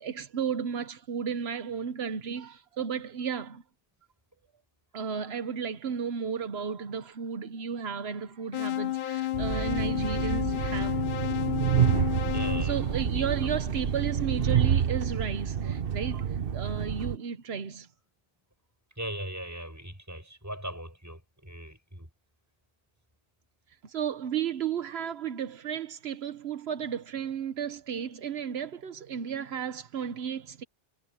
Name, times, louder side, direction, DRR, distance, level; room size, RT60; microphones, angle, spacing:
voice 1, 0.0-3.6 4.9-11.0 12.6-17.9 23.8-30.6, right 7 dB, 85° right, 1.1 m, -33 dB
sound 1, 8.5-13.7, left 14 dB, 60° left, 0.7 m, -32 dB
Train, 9.3-17.2, right 8 dB, 65° right, 1.2 m, -28 dB
voice 2, 12.3-13.3 19.0-22.1, right 1 dB, 15° right, 7.4 m, -39 dB
omnidirectional pair, 1.0 m